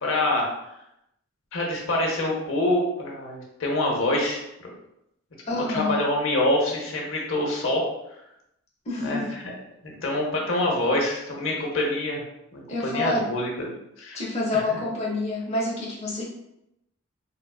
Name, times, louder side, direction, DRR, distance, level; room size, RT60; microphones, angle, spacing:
voice 1, 0.0-0.5 1.5-4.4 5.5-7.8 9.0-9.5 9.8-12.2 12.5-13.5 14.0-14.2 14.5-14.6, left 1 dB, 60° left, -1 dB, 0.8 m, -25 dB
voice 2, 5.5-6.0 8.9-9.3 12.7-13.3 14.1-16.2, left 2 dB, 30° left, -4 dB, 0.7 m, -27 dB
3.4 x 2.3 x 2.3 m, 0.83 s
head